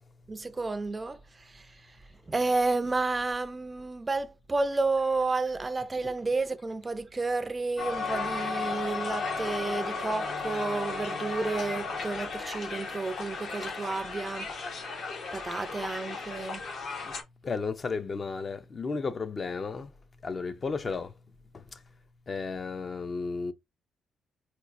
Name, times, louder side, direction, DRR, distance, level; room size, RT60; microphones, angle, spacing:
voice 1, 0.3-2.0 2.3-14.5 15.3-16.6, right 3 dB, 25° right, 0.4 m, -31 dB
Crowd, 7.8-17.2, left 4 dB, 60° left, 0.9 m, -35 dB
voice 2, 17.4-19.9 20.2-21.1 22.3-23.5, left 4 dB, 35° left, 0.5 m, -33 dB
4.2 x 2.3 x 2.5 m
cardioid pair, 90°, 0 cm